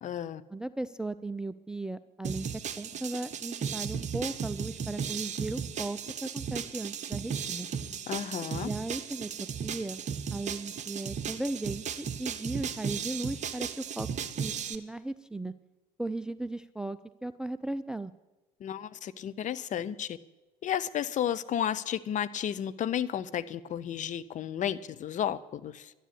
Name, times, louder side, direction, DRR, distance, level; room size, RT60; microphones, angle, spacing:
voice 1, 0.0-0.4 8.1-8.7 18.6-20.2 20.6-25.9, left 10 dB, 35° left, 14 dB, 0.7 m, -32 dB
voice 2, 0.5-2.5 2.8-7.7 8.6-10.0 10.3-14.1 14.4-15.5 16.0-18.1, right 2 dB, 5° right, 13 dB, 0.5 m, -36 dB
sound 1, 2.2-14.8, right 7 dB, 35° right, 1.1 m, -36 dB
12.0 x 11.0 x 8.5 m, 1.1 s
figure-of-eight pair, 60°, 21 cm